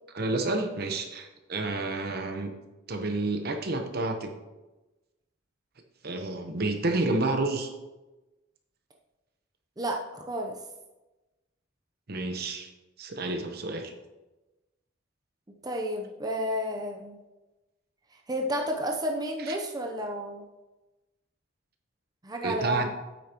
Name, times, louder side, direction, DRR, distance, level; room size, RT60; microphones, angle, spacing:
voice 1, 0.1-2.5 2.9-4.3 6.0-7.7 12.1-12.7 13.0-13.9 19.5-19.6 22.4-22.9, right 2 dB, 55° right, 5 dB, 1.0 m, -29 dB
voice 2, 9.8-10.6 15.6-17.2 18.3-20.4 22.2-22.9, equal, 20° right, 1 dB, 0.7 m, -31 dB
8.9 x 8.6 x 3.0 m, 1.1 s
head